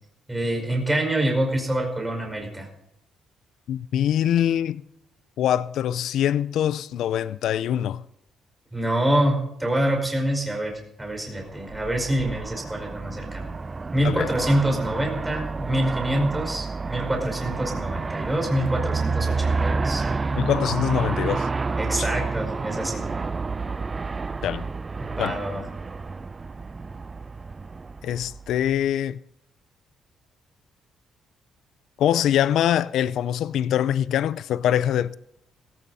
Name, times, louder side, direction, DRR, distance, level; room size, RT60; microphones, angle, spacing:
voice 1, 0.3-2.7 8.7-13.5 13.9-20.0 21.8-23.0 25.0-25.7, right 1 dB, 10° right, 5.2 m, -26 dB
voice 2, 3.7-4.8 5.4-8.0 14.0-14.3 20.4-21.5 22.0-22.1 24.4-24.7 25.2-25.4 28.0-29.2 32.0-35.2, left 10 dB, 75° left, 0.5 m, -23 dB
Aircraft, 11.5-28.7, right 4 dB, 30° right, 0.5 m, -29 dB
17.0 x 16.5 x 4.1 m
cardioid pair, 90°, 0 cm